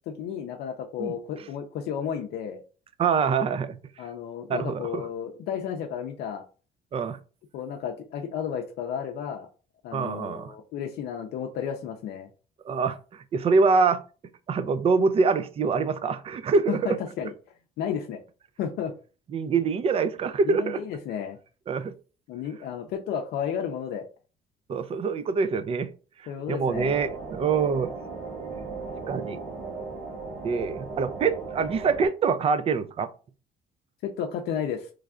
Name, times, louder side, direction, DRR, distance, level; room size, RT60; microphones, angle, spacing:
voice 1, 0.1-2.6 4.0-6.4 7.5-9.5 9.8-12.3 16.7-17.3 17.8-18.2 18.6-18.9 20.4-21.4 22.3-24.1 26.3-27.0 34.0-34.9, left 8 dB, 75° left, 0.5 m, -32 dB
voice 2, 3.0-3.8 4.5-5.0 6.9-7.2 9.9-10.5 12.7-13.0 13.3-14.0 14.5-17.0 19.3-20.8 21.7-21.9 24.7-25.9 26.5-27.9 29.1-29.4 30.4-33.1, right 5 dB, 35° right, 0.4 m, -25 dB
sound 1, 26.7-32.1, right 4 dB, 65° right, 1.2 m, -37 dB
3.2 x 2.4 x 3.6 m
cardioid pair, 110°, 17 cm